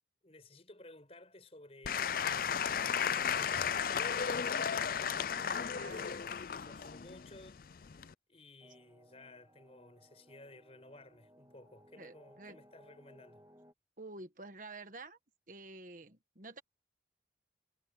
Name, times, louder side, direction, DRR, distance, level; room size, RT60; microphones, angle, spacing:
voice 1, 0.2-4.8 5.3-13.5, left 2 dB, 35° left, 5.4 m, -56 dB
Applause / Crowd, 1.8-8.1, left 7 dB, 50° left, 0.4 m, -34 dB
Bowed string instrument, 1.9-6.7, right 3 dB, 70° right, 6.2 m, -69 dB
voice 2, 5.5-6.1 12.0-12.6 14.0-15.2 15.5-16.6, right 2 dB, 45° right, 1.5 m, -49 dB
sound 1, 8.6-13.7, equal, 20° right, 2.1 m, -62 dB
head